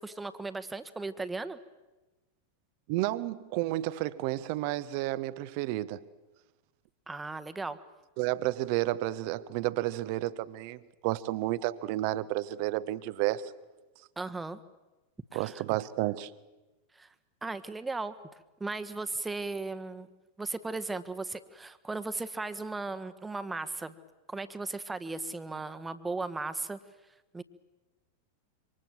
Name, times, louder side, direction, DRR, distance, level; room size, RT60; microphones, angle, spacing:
voice 1, 0.0-1.6 7.1-7.8 14.2-14.6 15.3-15.6 16.9-17.1 17.4-18.1 18.6-20.1 20.4-23.9 24.3-26.8 27.3-27.4, right 3 dB, 10° right, 1.5 m, -36 dB
voice 2, 2.9-6.0 8.2-13.5 15.3-16.3, right 16 dB, 45° right, 1.1 m, -31 dB
27.0 x 25.5 x 7.7 m
figure-of-eight pair, 90°, 0 cm